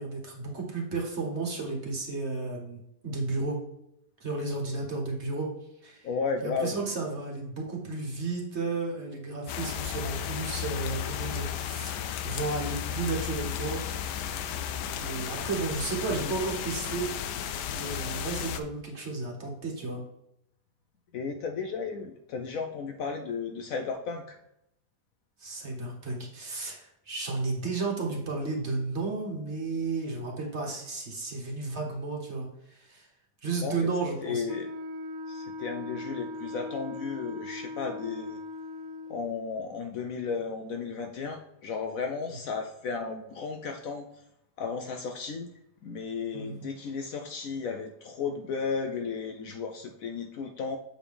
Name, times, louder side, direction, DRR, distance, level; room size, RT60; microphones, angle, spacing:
voice 1, 0.0-3.6 4.2-5.5 5.8-6.1 6.4-13.8 14.1-14.3 15.0-17.1 17.7-20.0 25.4-33.1 33.4-34.4 46.3-46.7, right 3 dB, 45° right, -1 dB, 1.5 m, -33 dB
voice 2, 6.0-6.7 16.1-16.3 21.1-24.4 33.6-33.7 34.2-34.7 35.3-38.4 39.1-44.1 44.6-45.5 45.8-50.8, left 5 dB, 70° left, 4 dB, 0.9 m, -34 dB
sound 1, 9.5-18.6, left 9 dB, 85° left, 1.2 m, -34 dB
Wind instrument woodwind instrument, 34.5-39.3, left 2 dB, 65° right, 1.0 m, -39 dB
7.3 x 5.1 x 3.5 m, 0.82 s
omnidirectional pair, 1.8 m